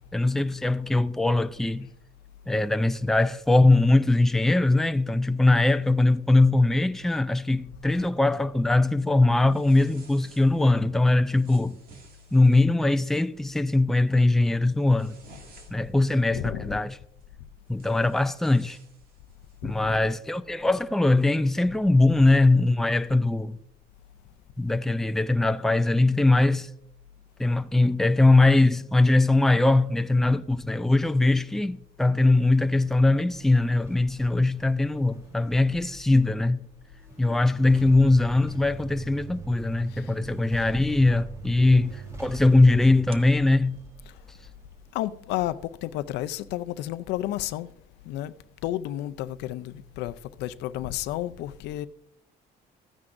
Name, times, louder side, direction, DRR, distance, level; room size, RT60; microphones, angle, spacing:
voice 1, 0.1-1.9 2.5-11.8 12.3-15.2 15.7-17.0 17.7-18.8 19.6-23.6 24.6-26.7 27.4-36.7 37.2-43.8, left 2 dB, ahead, 0.4 m, -21 dB
sound 1, 9.4-10.7 11.3-12.7 13.2-13.5 13.9-14.2 14.6-16.0 17.2-17.3 17.7-19.6, right 3 dB, 60° right, 2.2 m, -54 dB
voice 2, 16.3-16.8 19.6-20.0 39.9-40.1 44.9-47.7 48.1-48.3 48.6-51.9, left 14 dB, 90° left, 0.5 m, -32 dB
sound 2, 32.2-47.7 48.1-48.2, left 1 dB, 20° right, 2.2 m, -47 dB
sound 3, 37.6-44.6, right 8 dB, 35° right, 0.7 m, -43 dB
14.0 x 9.6 x 2.6 m
cardioid pair, 110°, 17 cm